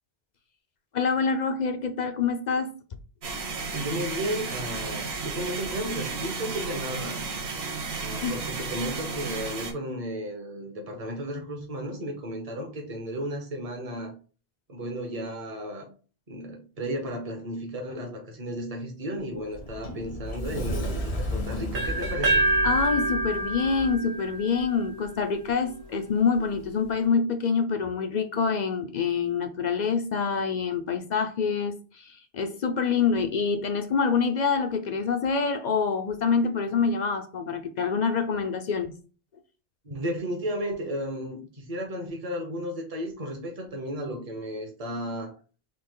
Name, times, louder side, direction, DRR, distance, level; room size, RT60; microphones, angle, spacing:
voice 1, 0.9-2.7 8.2-8.4 22.6-38.9, left 5 dB, 50° left, 0.6 m, -26 dB
sound 1, 3.2-9.7, right 4 dB, 80° right, 1.2 m, -33 dB
voice 2, 3.7-7.2 8.0-14.1 14.7-15.9 16.3-22.4 39.8-45.3, equal, 35° right, 1.1 m, -34 dB
Sliding door, 19.1-24.0, equal, 85° left, 1.3 m, -33 dB
sound 2, 21.7-25.6, right 2 dB, 55° right, 1.3 m, -27 dB
4.2 x 2.8 x 3.8 m
omnidirectional pair, 1.1 m